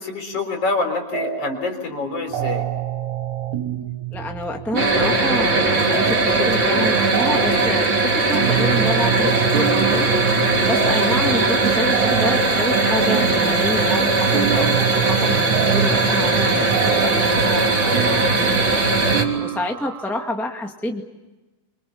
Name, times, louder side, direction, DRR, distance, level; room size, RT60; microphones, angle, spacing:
voice 1, 0.0-2.7, left 3 dB, 50° left, 5 dB, 4.8 m, -26 dB
sound 1, 1.1-1.8 2.0-20.3, right 11 dB, 70° right, 2.6 m, -28 dB
voice 2, 4.1-10.1 10.6-18.8 19.4-21.0, left 1 dB, ahead, 2 dB, 1.2 m, -28 dB
sound 2, 4.8-19.2, right 3 dB, 35° right, 3.9 m, -19 dB
27.0 x 25.0 x 7.2 m, 1.1 s
omnidirectional pair, 3.6 m